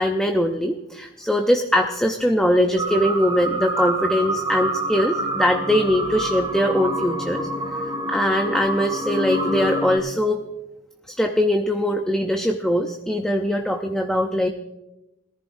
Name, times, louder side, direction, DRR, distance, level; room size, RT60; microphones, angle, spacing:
voice 1, 0.0-7.5 8.1-10.4 11.1-14.5, equal, 5° left, 4 dB, 0.6 m, -21 dB
sound 1, 2.8-10.0, right 1 dB, 25° right, 2.0 m, -27 dB
20.5 x 14.5 x 2.6 m, 0.93 s
head